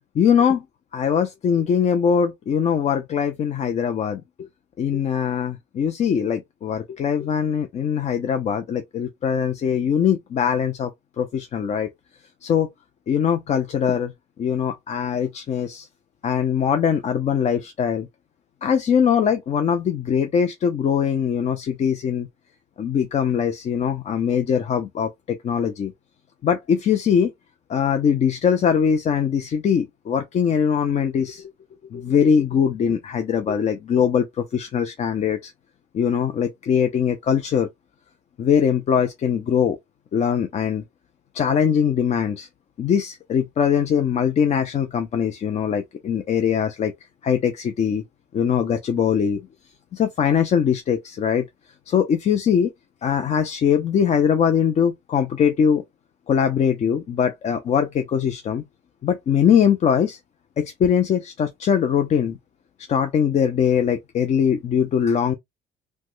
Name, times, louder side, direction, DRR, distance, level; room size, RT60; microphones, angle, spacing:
voice 1, 0.1-0.6 0.9-4.5 4.8-10.9 11.2-11.9 12.4-12.7 13.1-14.1 14.4-15.9 16.2-18.1 18.6-22.3 22.8-25.9 26.4-27.3 27.7-31.5 31.9-35.5 35.9-37.7 38.4-39.8 40.1-40.8 41.3-42.5 42.8-46.9 47.2-48.0 48.3-49.5 49.9-51.5 51.9-52.7 53.0-55.8 56.3-58.6 59.0-60.2 60.6-62.4 62.9-65.3, left 7 dB, 40° left, 0.5 m, -21 dB
3.1 x 2.1 x 3.0 m
cardioid pair, 110°, 17 cm